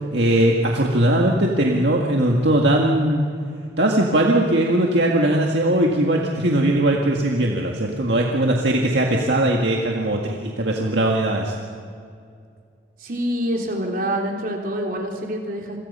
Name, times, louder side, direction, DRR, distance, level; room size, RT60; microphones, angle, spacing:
voice 1, 0.1-3.2 3.8-11.5, right 1 dB, 65° right, 0 dB, 2.0 m, -19 dB
voice 2, 13.0-15.8, equal, 45° right, 1 dB, 3.6 m, -26 dB
28.5 x 23.0 x 5.6 m, 2.3 s
head